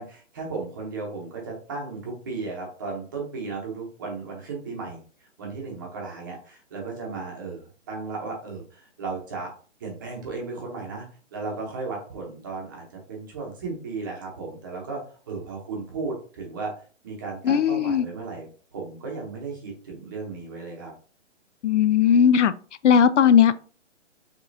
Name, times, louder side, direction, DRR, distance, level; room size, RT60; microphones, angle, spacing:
voice 1, 0.0-9.5 9.8-11.0 11.3-16.7 17.0-20.9, right 4 dB, 15° right, 0.8 m, -35 dB
voice 2, 17.5-18.0 21.6-22.5 22.8-23.6, left 8 dB, 70° left, 0.5 m, -18 dB
5.2 x 3.7 x 2.6 m
hypercardioid pair, 170°, 37 cm